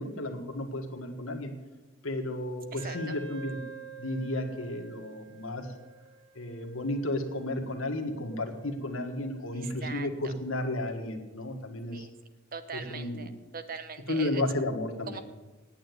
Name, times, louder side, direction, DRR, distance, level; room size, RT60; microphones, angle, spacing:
voice 1, 0.0-1.5 2.0-3.6 4.0-5.7 6.3-12.1 12.7-13.3 14.1-15.2, left 1 dB, 85° left, 4 dB, 1.7 m, -33 dB
voice 2, 2.7-3.2 9.5-10.3 11.9-12.1 12.5-14.4 15.1-15.2, right 5 dB, 45° right, 10 dB, 0.9 m, -41 dB
Wind instrument woodwind instrument, 2.8-10.1, right 2 dB, 70° right, 3.2 m, -48 dB
9.0 x 8.7 x 9.3 m, 1.2 s
head